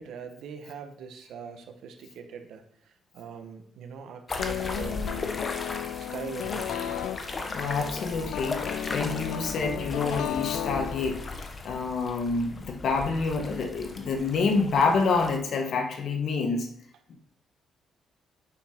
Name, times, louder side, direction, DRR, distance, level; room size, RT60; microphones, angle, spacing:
voice 1, 0.0-2.6 3.1-5.3 5.9-6.7, right 6 dB, 80° right, 6 dB, 1.1 m, -41 dB
sound 1, 4.3-15.4, left 3 dB, 35° left, 1.1 m, -37 dB
sound 2, 4.4-11.5, left 10 dB, 85° left, 0.5 m, -34 dB
voice 2, 7.5-11.2 11.6-16.7 17.1-17.2, left 4 dB, 65° left, 5 dB, 1.4 m, -27 dB
8.4 x 5.8 x 4.4 m, 0.67 s
cardioid pair, 90°, 0 cm